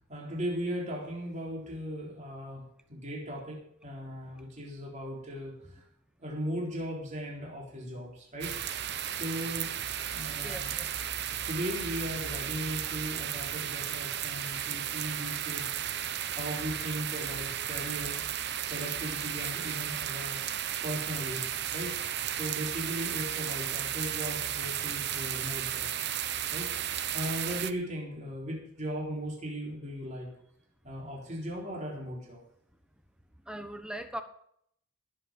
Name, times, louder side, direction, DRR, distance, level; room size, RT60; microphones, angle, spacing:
voice 1, 0.1-5.6 6.2-8.6 9.0-9.8 10.1-10.8 11.5-15.8 16.4-18.2 18.7-20.4 20.8-25.9 26.5-30.3 30.8-32.4, equal, 35° right, -1 dB, 3.9 m, -38 dB
sound 1, 8.4-27.7, right 10 dB, 55° right, 0.8 m, -34 dB
voice 2, 10.4-10.9 33.5-34.2, right 1 dB, 5° right, 8 dB, 1.1 m, -39 dB
18.0 x 7.8 x 5.3 m, 0.69 s
head